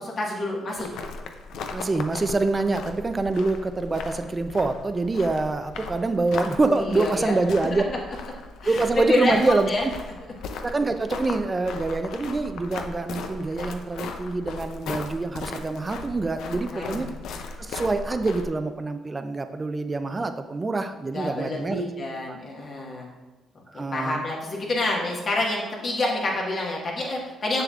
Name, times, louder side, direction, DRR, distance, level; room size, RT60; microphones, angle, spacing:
voice 1, 0.2-0.9 6.6-7.4 7.7-7.8 8.6-9.3 9.7-9.8 16.7-17.1 21.1-23.1 23.7-27.6, left 2 dB, 50° left, -2 dB, 1.6 m, -28 dB
sound 1, 0.8-18.5, left 4 dB, 80° left, 0.5 m, -37 dB
voice 2, 1.7-7.8 8.6-9.9 10.6-17.1 17.6-21.8 22.3-22.4 23.7-24.2, right 3 dB, 25° right, 8 dB, 0.5 m, -25 dB
6.9 x 6.7 x 2.5 m, 1.2 s
cardioid pair, 90°, 0 cm